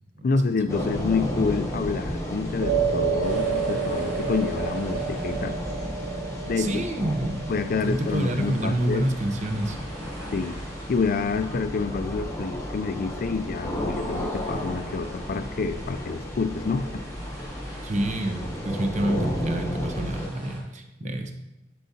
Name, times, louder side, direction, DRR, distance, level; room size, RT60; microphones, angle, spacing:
voice 1, 0.2-5.6 6.5-6.8 7.5-9.1 10.3-10.6 10.9-17.0 21.0-21.1, left 4 dB, 45° left, 11 dB, 0.4 m, -28 dB
sound 1, 0.7-20.3, equal, 15° left, 0.9 m, -33 dB
sound 2, 2.6-11.1, right 6 dB, 85° right, 0.5 m, -31 dB
sound 3, 3.2-20.6, right 1 dB, 10° right, 2.0 m, -46 dB
voice 2, 6.6-7.4 7.8-9.8 17.8-18.4 18.6-21.4, right 1 dB, 40° right, 6 dB, 0.7 m, -27 dB
10.0 x 4.7 x 2.8 m, 1.0 s
head